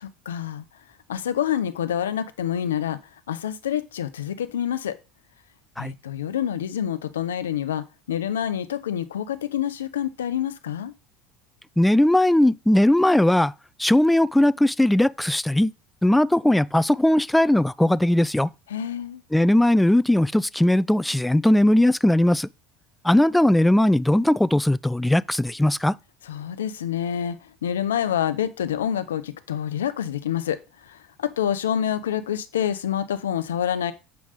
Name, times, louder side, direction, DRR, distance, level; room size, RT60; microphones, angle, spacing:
voice 1, 0.0-0.6 1.1-3.0 3.3-5.0 5.8-10.9 18.7-19.2 26.3-33.9, left 9 dB, 85° left, 0.7 m, -27 dB
voice 2, 11.8-13.5 13.8-15.7 16.0-18.5 19.3-22.5 23.0-25.9, left 1 dB, 5° left, 0.3 m, -19 dB
7.9 x 5.2 x 5.0 m
hypercardioid pair, 75°, 0 cm